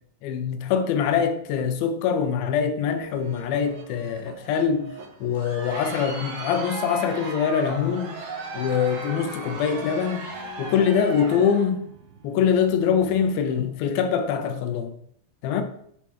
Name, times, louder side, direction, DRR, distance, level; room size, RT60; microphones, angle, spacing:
voice 1, 0.2-4.9 5.2-8.2 8.6-10.2 10.6-11.9 12.2-15.0 15.4-15.6, left 7 dB, 90° left, 2.6 m, -24 dB
sound 1, 3.0-13.9, right 2 dB, 80° right, 2.7 m, -46 dB
Crowd, 5.2-11.7, right 3 dB, 50° right, 2.1 m, -36 dB
7.3 x 4.8 x 4.7 m
omnidirectional pair, 4.1 m